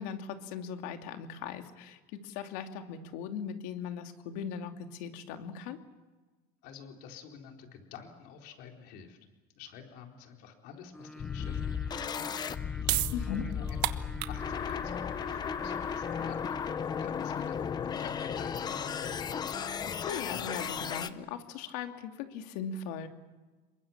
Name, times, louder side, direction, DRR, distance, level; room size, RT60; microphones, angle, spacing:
voice 1, 0.0-5.8 13.1-13.4 20.1-23.1, left 7 dB, 80° left, 5 dB, 2.7 m, -39 dB
voice 2, 6.6-9.2 9.6-17.6 18.0-19.5, left 7 dB, 55° left, 2 dB, 4.2 m, -49 dB
Singing, 10.9-17.1, left 1 dB, 5° left, 1.2 m, -47 dB
sound 1, 11.2-21.1, left 7 dB, 20° left, 0.8 m, -35 dB
sound 2, 12.7-19.2, right 17 dB, 70° right, 1.2 m, -37 dB
27.5 x 23.0 x 7.4 m, 1.2 s
cardioid pair, 175°, 19 cm